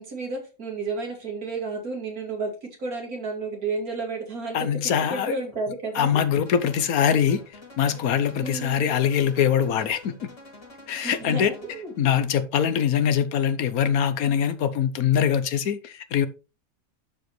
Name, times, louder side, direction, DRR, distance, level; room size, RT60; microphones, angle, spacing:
voice 1, 0.0-6.2 8.4-8.8 11.0-11.9, right 3 dB, 85° right, 2.9 m, -32 dB
voice 2, 4.5-5.3 5.9-7.4 7.8-10.3 10.9-11.5 12.0-16.3, left 8 dB, 80° left, 1.3 m, -23 dB
sound 1, 6.5-12.1, left 2 dB, 60° left, 4.4 m, -47 dB
11.5 x 5.0 x 3.1 m
omnidirectional pair, 1.5 m